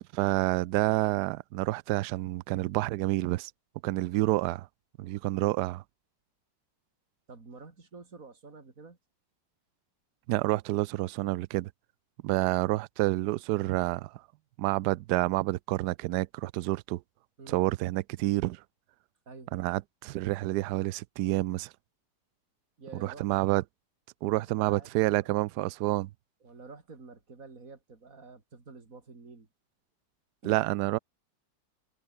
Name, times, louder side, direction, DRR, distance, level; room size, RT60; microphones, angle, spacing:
voice 1, 0.1-3.5 3.8-4.7 5.0-5.8 10.3-11.7 12.2-14.2 14.6-17.0 17.5-18.6 19.5-21.7 23.0-23.6 24.2-26.1 30.5-31.0, right 18 dB, 75° right, 1.1 m, -28 dB
voice 2, 7.3-9.0 17.4-17.6 19.3-19.5 22.8-23.3 24.3-25.3 26.4-29.5 30.4-30.6, right 4 dB, 50° right, 3.8 m, -49 dB
omnidirectional pair, 1.9 m